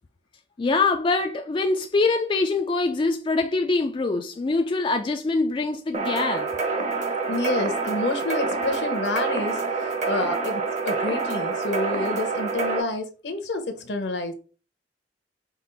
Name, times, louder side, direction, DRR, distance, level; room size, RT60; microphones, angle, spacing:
voice 1, 0.6-6.5, left 3 dB, 30° left, 0.3 m, -24 dB
sound 1, 5.9-12.8, right 4 dB, 40° right, 0.9 m, -27 dB
voice 2, 7.0-14.3, left 2 dB, 70° left, 0.8 m, -29 dB
5.1 x 2.4 x 3.9 m
head